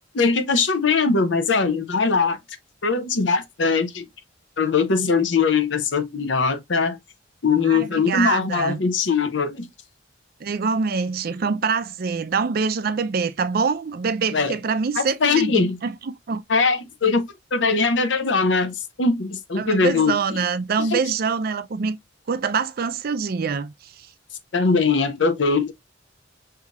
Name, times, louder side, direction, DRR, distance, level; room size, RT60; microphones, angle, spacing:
voice 1, 0.1-2.4 2.8-4.1 4.6-7.0 7.4-9.7 14.3-14.6 15.0-15.8 16.5-20.2 20.9-21.0 24.5-25.7, left 4 dB, 70° left, 0.8 m, -21 dB
voice 2, 7.7-8.8 10.4-16.4 19.6-22.0 22.3-24.1, right 5 dB, 50° right, 0.4 m, -25 dB
5.6 x 2.8 x 2.3 m
head